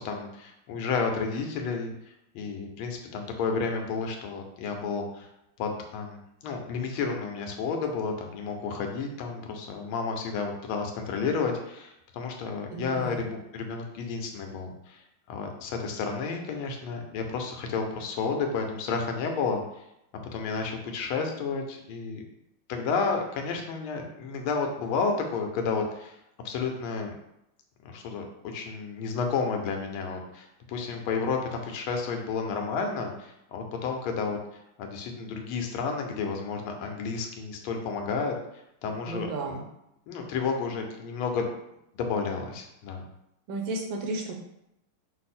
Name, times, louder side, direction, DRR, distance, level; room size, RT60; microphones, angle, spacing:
voice 1, 0.0-1.9 2.3-5.3 5.6-15.0 15.3-19.6 20.3-22.2 22.7-26.2 26.4-27.1 27.8-28.2 28.5-34.4 34.8-38.4 38.8-39.6 40.1-41.5 41.9-43.0, left 5 dB, 80° left, 3 dB, 1.5 m, -31 dB
voice 2, 12.7-13.2 39.1-39.7 43.5-44.3, right 3 dB, 75° right, 2 dB, 1.4 m, -33 dB
5.6 x 2.0 x 4.2 m, 0.84 s
omnidirectional pair, 2.3 m